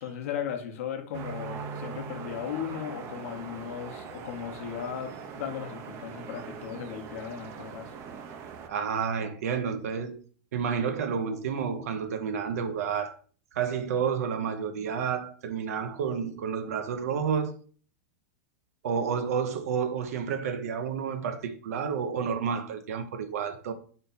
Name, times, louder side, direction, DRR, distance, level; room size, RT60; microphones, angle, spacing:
voice 1, 0.0-7.9, left 9 dB, 65° left, 0.8 m, -36 dB
sound 1, 1.1-8.7, right 6 dB, 35° right, 0.5 m, -41 dB
voice 2, 8.7-10.2 10.5-13.1 13.5-17.5 18.8-23.7, right 6 dB, 80° right, 0.7 m, -30 dB
3.7 x 2.8 x 3.9 m
supercardioid pair, 150°, 8 cm